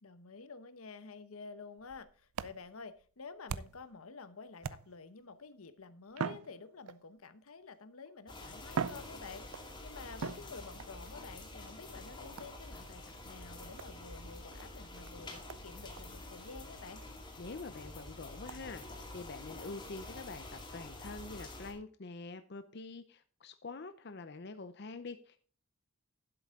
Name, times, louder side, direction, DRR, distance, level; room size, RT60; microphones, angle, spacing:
voice 1, 0.0-17.0, left 4 dB, 80° left, 0.9 m, -50 dB
sound 1, 1.8-4.0 4.6-5.2 6.1-7.2 8.1-8.2 8.6-9.7 10.2-10.9 12.4-12.7 13.8-14.0 14.6-14.7 15.1-15.2 15.5-15.7 16.0-16.1 16.5-16.6 17.0-17.1 17.5-17.6 18.5-18.6, right 6 dB, 85° right, 0.5 m, -41 dB
sound 2, 8.3-21.7, left 2 dB, 20° left, 2.3 m, -48 dB
voice 2, 17.4-18.8 19.1-25.4, left 3 dB, 50° left, 0.6 m, -46 dB
11.5 x 7.9 x 3.6 m
head